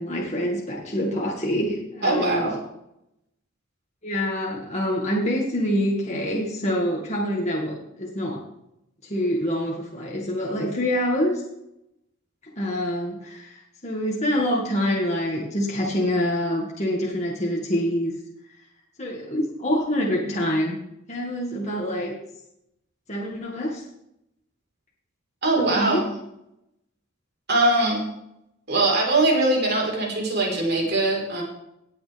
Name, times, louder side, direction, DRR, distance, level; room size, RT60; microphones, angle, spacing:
voice 1, 0.0-2.5 4.0-8.4 9.0-11.4 12.6-18.1 19.0-20.8 21.1-22.1 23.1-23.8 25.6-26.1, equal, 30° left, -3 dB, 2.0 m, -26 dB
voice 2, 2.0-2.6 25.4-26.1 27.5-28.1 28.7-31.4, right 2 dB, 50° right, -2 dB, 4.3 m, -21 dB
19.0 x 8.4 x 3.5 m, 0.80 s
head